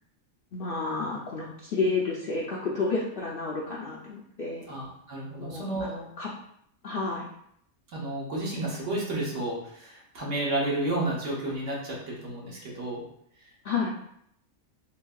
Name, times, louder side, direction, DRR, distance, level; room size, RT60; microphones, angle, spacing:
voice 1, 0.5-4.7 5.4-6.3 6.8-7.3 13.6-13.9, left 4 dB, 65° left, -4 dB, 0.5 m, -31 dB
voice 2, 4.7-5.9 7.9-13.0, right 1 dB, 60° right, -4 dB, 1.2 m, -31 dB
3.9 x 2.7 x 2.3 m, 0.71 s
omnidirectional pair, 1.5 m